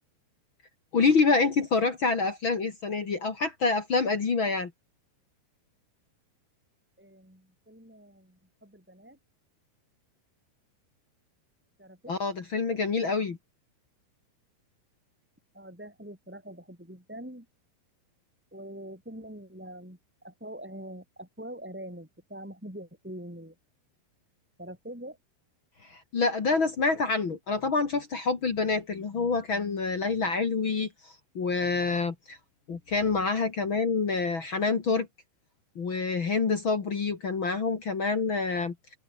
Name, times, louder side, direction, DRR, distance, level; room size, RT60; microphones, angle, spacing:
voice 1, 0.9-4.7 12.1-13.4 25.8-32.4 32.7-35.1 35.8-38.7, left 4 dB, 40° left, 2.0 m, -27 dB
voice 2, 7.0-9.2 11.8-12.2 15.5-17.5 18.5-23.5 24.6-25.2, right 1 dB, ahead, 5.8 m, -44 dB
omnidirectional pair, 4.8 m